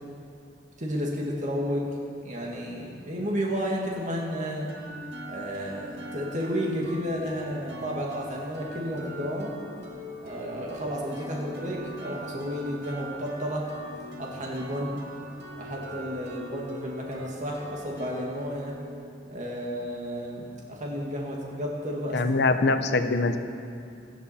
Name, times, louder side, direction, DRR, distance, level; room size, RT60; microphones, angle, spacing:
voice 1, 0.8-1.9 2.2-4.7 5.3-9.6 10.2-13.7 14.2-15.0 15.6-18.8 19.3-22.2, equal, 40° right, -2 dB, 1.9 m, -32 dB
sound 1, 4.7-20.3, right 1 dB, 65° right, 2.0 m, -42 dB
voice 2, 22.1-23.4, left 3 dB, 65° left, 8 dB, 0.8 m, -23 dB
17.5 x 13.5 x 4.3 m, 2.4 s
head